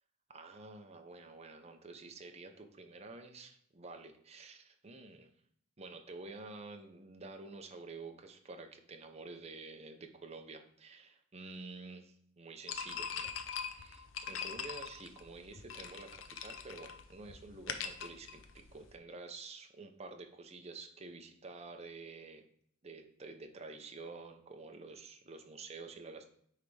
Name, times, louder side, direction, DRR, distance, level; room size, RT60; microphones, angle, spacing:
voice 1, 0.3-5.3 5.8-22.5 22.8-26.2, right 3 dB, 30° right, 5 dB, 0.7 m, -49 dB
sound 1, 12.7-18.9, left 6 dB, 70° left, 0.6 m, -42 dB
9.2 x 3.5 x 3.3 m, 0.66 s
head